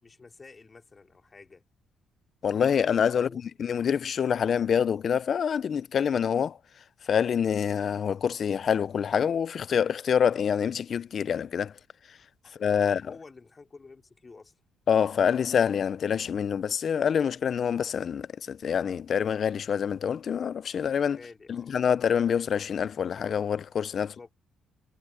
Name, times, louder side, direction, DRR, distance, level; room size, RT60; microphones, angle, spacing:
voice 1, 0.0-1.6 3.2-3.4 12.8-14.5 21.1-21.8 24.0-24.3, left 4 dB, 30° left, 3.3 m, -50 dB
voice 2, 2.4-3.3 3.6-6.6 7.1-11.7 12.6-13.0 14.9-21.2 21.5-24.1, left 7 dB, 55° left, 0.5 m, -26 dB
cardioid pair, 90°, 0 cm